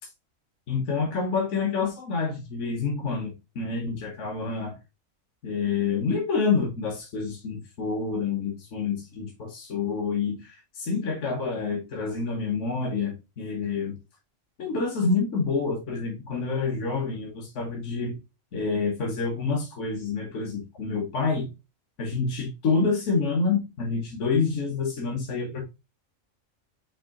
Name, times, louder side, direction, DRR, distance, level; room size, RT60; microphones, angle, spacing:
voice 1, 0.7-4.8 5.4-14.0 14.6-18.2 18.5-21.5 22.0-25.6, left 4 dB, 65° left, 0 dB, 1.3 m, -28 dB
4.9 x 2.7 x 3.6 m, 0.26 s
omnidirectional pair, 1.4 m